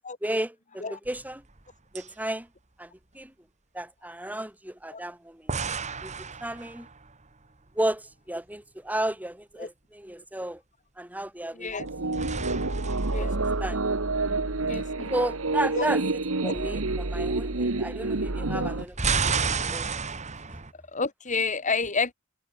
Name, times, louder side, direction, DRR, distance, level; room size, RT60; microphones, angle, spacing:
voice 1, 0.2-1.4 1.9-2.5 2.8-3.3 3.7-5.5 6.0-6.9 7.7-10.6 11.0-11.7 13.1-13.8 15.1-16.0 16.4-19.9, right 1 dB, 10° right, 5.1 m, -33 dB
sound 1, 1.1-1.7 1.9-2.1 5.5-7.2 11.7-14.2 18.7-20.7, right 5 dB, 35° right, 2.0 m, -31 dB
voice 2, 11.5-11.9 13.1-13.6 14.7-15.1 15.7-15.9 16.4-16.5 19.1-19.2 20.9-22.1, left 4 dB, 35° left, 3.1 m, -30 dB
sound 2, 11.8-18.9, right 3 dB, 70° right, 1.5 m, -28 dB
head